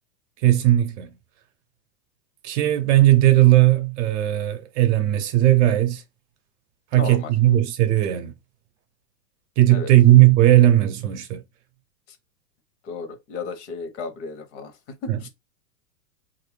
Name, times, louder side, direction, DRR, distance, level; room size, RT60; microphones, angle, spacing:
voice 1, 0.4-1.1 2.4-6.0 6.9-8.3 9.6-11.4 15.1-15.2, right 14 dB, 50° right, 0.7 m, -17 dB
voice 2, 6.9-7.3 9.7-9.9 12.1-12.2 12.8-15.3, left 4 dB, 50° left, 1.2 m, -34 dB
3.0 x 2.6 x 3.3 m
hypercardioid pair, 120°, 46 cm